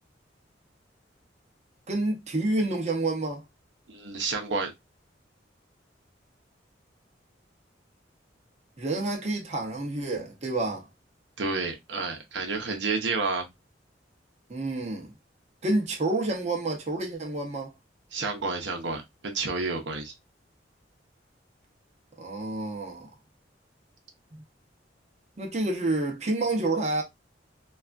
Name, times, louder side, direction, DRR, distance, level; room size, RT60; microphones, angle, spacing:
voice 1, 1.9-3.4 8.8-10.9 14.5-15.1 15.6-17.7 22.2-23.1 25.4-27.0, right 2 dB, 40° right, 0.7 m, -28 dB
voice 2, 3.9-4.7 11.4-13.5 18.1-20.1, right 4 dB, 75° right, 0.7 m, -30 dB
3.3 x 2.3 x 2.4 m
head